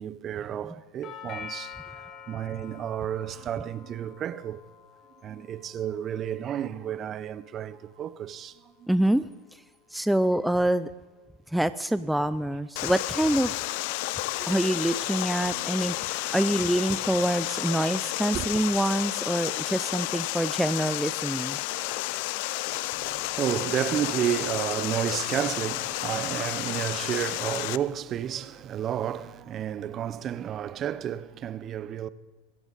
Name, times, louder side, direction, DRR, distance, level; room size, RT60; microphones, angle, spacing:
voice 1, 0.0-4.6 5.2-9.2 11.6-11.7 15.5-16.5 16.9-17.0 18.1-18.6 22.9-32.1, right 10 dB, 35° right, 0.8 m, -32 dB
Doorbell, 1.0-9.1, left 8 dB, 35° left, 1.7 m, -47 dB
voice 2, 8.9-9.2 9.9-10.9 11.5-13.5 14.5-21.6, right 1 dB, 5° right, 0.5 m, -26 dB
Water, 12.8-27.8, left 19 dB, 60° left, 0.6 m, -31 dB
24.5 x 14.5 x 4.1 m
hypercardioid pair, 110°, 0 cm